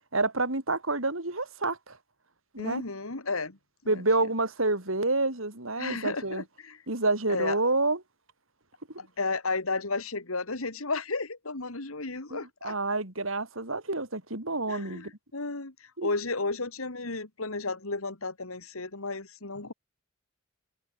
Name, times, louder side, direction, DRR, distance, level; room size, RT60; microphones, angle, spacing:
voice 1, 0.1-2.0 2.5-2.8 3.9-6.4 6.9-8.0 12.3-15.1 16.0-16.1, right 2 dB, 70° right, 4.8 m, -28 dB
voice 2, 2.6-3.6 3.9-4.0 5.8-6.8 7.3-7.6 9.0-12.7 14.7-15.7 16.0-19.7, left 3 dB, 80° left, 2.6 m, -33 dB
head